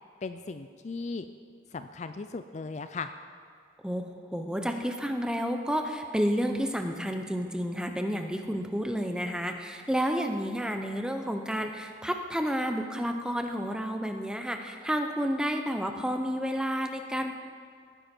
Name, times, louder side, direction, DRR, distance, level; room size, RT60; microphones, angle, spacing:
voice 1, 0.2-1.3 1.7-3.1, left 4 dB, 35° left, 9 dB, 0.4 m, -37 dB
voice 2, 3.8-17.4, equal, 5° right, 5 dB, 0.8 m, -30 dB
18.5 x 10.0 x 4.5 m, 2.2 s
head